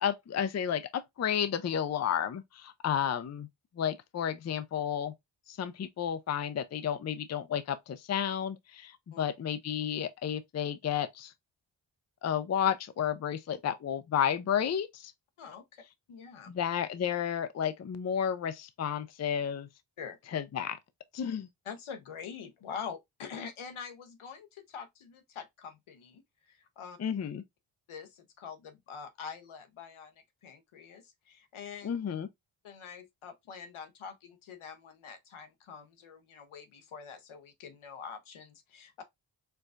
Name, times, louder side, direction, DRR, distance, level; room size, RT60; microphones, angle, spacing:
voice 1, 0.0-3.5 3.8-5.1 5.5-11.3 12.2-15.1 16.5-19.7 20.3-20.8 21.1-21.5 27.0-27.4 31.8-32.3, left 9 dB, 35° left, 0.5 m, -32 dB
voice 2, 15.4-15.8 16.1-16.5 20.0-20.2 21.6-27.0 27.9-31.9 32.6-39.0, left 6 dB, 75° left, 0.8 m, -45 dB
4.5 x 2.3 x 2.4 m
cardioid pair, 45°, 49 cm